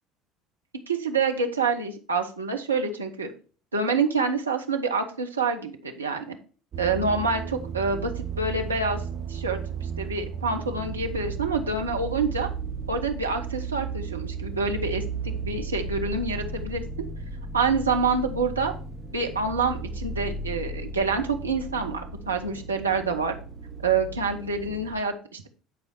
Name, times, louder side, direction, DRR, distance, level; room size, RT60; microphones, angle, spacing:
voice 1, 0.9-3.3 3.7-6.4 6.8-9.0 9.3-9.6 10.0-12.5 12.9-16.8 17.5-18.7 19.1-23.4 23.8-25.5, right 4 dB, 80° right, 3 dB, 1.1 m, -27 dB
sound 1, 6.7-24.9, right 5 dB, 40° right, 1.9 m, -35 dB
10.5 x 4.9 x 4.4 m, 0.38 s
figure-of-eight pair, 65°, 0 cm